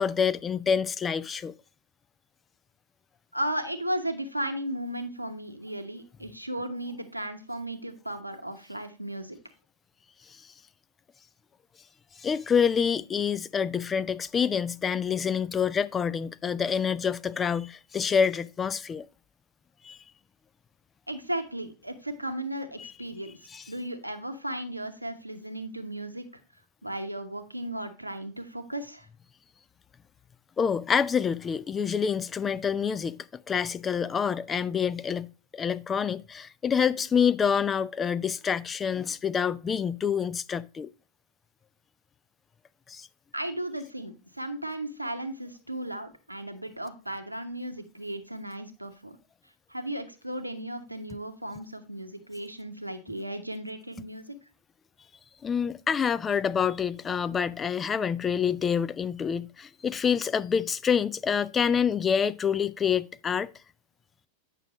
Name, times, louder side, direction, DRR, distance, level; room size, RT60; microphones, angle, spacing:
voice 1, 0.0-1.5 12.2-19.1 19.8-20.0 22.8-22.9 23.5-23.6 30.6-33.2 33.5-40.9 42.9-43.1 55.4-63.5, left 7 dB, 20° left, 0.4 m, -27 dB
voice 2, 3.3-9.4 21.1-23.4 23.7-26.2 26.8-29.1 43.3-49.2 49.7-54.3, right 1 dB, 85° right, 1.0 m, -35 dB
8.9 x 6.1 x 3.0 m
figure-of-eight pair, 90°, 0 cm